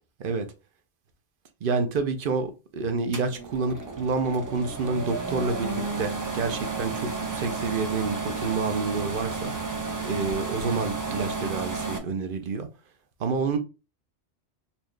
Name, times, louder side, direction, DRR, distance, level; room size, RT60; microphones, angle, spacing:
voice 1, 1.6-9.5 10.0-12.7 13.2-13.6, right 4 dB, 55° right, 7 dB, 0.7 m, -28 dB
sound 1, 3.1-12.0, right 4 dB, 25° right, 0.4 m, -32 dB
4.3 x 2.4 x 3.1 m, 0.30 s
omnidirectional pair, 1.2 m